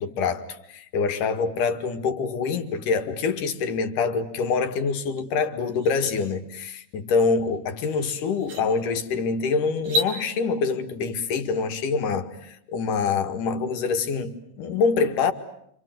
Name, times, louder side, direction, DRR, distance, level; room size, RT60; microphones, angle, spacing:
voice 1, 0.0-15.3, left 5 dB, 75° left, 3.5 m, -25 dB
sound 1, 5.2-5.3 5.7-6.1 7.8-7.9 8.4-8.7 9.8-10.1, left 1 dB, 85° right, 5.1 m, -28 dB
29.5 x 26.5 x 7.8 m
omnidirectional pair, 3.7 m